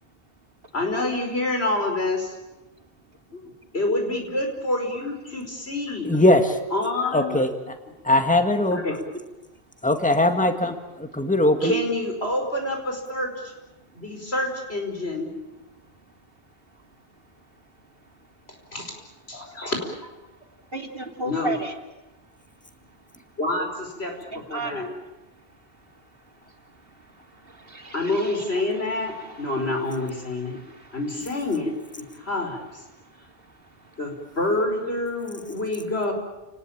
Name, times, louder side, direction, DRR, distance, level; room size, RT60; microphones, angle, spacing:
voice 1, 0.7-2.4 3.3-3.4 3.7-6.2 6.7-7.4 8.7-9.0 11.6-13.3 14.0-15.3 18.7-18.9 19.3-19.8 21.3-21.5 23.4-24.2 24.5-24.8 27.9-30.6 30.9-32.6 34.0-36.1, left 2 dB, 85° left, 3 dB, 5.4 m, -27 dB
voice 2, 6.0-6.6 7.1-7.5 8.0-8.8 9.8-11.7, left 1 dB, 5° left, 6 dB, 1.8 m, -20 dB
voice 3, 20.7-21.7 24.3-25.1 25.9-31.0 32.1-32.3 32.9-34.0, right 3 dB, 65° right, 4 dB, 2.9 m, -36 dB
29.5 x 19.0 x 8.7 m, 1.0 s
omnidirectional pair, 1.0 m